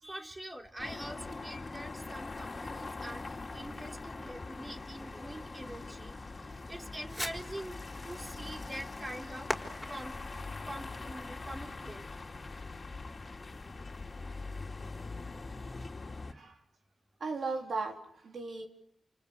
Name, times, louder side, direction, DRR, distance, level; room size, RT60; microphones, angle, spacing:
voice 1, 0.0-6.1 6.4-9.5 9.9-10.1 10.6-12.0, right 1 dB, 25° right, 2 dB, 3.5 m, -44 dB
sound 1, 0.8-16.3, left 3 dB, 45° left, 2.7 m, -43 dB
Fireworks, 1.3-12.0, left 1 dB, 5° left, 5.5 m, -46 dB
voice 2, 16.3-16.6 17.2-18.7, right 3 dB, 75° right, 2 dB, 4.0 m, -37 dB
29.5 x 29.5 x 6.7 m, 0.73 s
cardioid pair, 75°, 0 cm